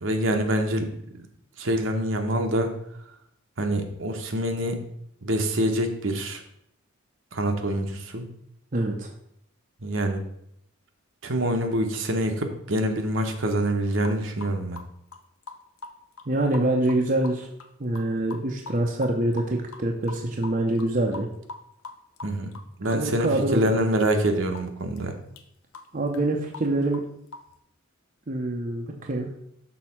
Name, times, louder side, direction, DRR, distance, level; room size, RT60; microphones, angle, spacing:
voice 1, 0.0-0.9 1.6-2.7 3.6-4.8 5.2-6.4 7.3-8.2 9.8-10.2 11.2-14.8 22.2-22.5 22.8-25.1, right 1 dB, 60° right, 5 dB, 1.0 m, -25 dB
voice 2, 8.7-9.1 16.3-17.5 17.8-21.3 22.9-23.7 25.9-27.0 28.3-29.3, right 1 dB, 40° right, 1 dB, 0.7 m, -25 dB
sound 1, 14.0-14.2 14.4-16.3 16.5-17.3 17.6-17.7 18.0-18.1 18.3-23.4 23.7-23.9 24.1-24.2 24.5-24.6 25.0-25.1 25.3-25.4 25.7-26.2 26.5-26.7 26.9-27.6, left 3 dB, 85° left, 0.8 m, -41 dB
6.3 x 4.0 x 5.8 m, 0.73 s
head